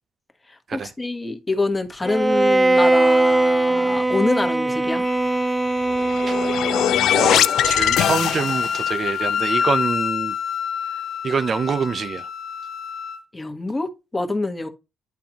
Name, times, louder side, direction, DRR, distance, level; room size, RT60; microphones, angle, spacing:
voice 1, 0.7-5.0 13.3-14.7, left 2 dB, 20° left, 1.3 m, -25 dB
Bowed string instrument, 2.0-7.2, right 2 dB, 15° right, 0.3 m, -20 dB
Wind instrument woodwind instrument, 5.0-13.2, left 7 dB, 65° left, 0.7 m, -27 dB
sound 1, 5.9-8.9, left 11 dB, 80° left, 0.3 m, -21 dB
voice 2, 7.1-10.3 11.2-12.3, right 5 dB, 45° right, 0.6 m, -25 dB
10.5 x 3.8 x 2.9 m
cardioid pair, 90°, 0 cm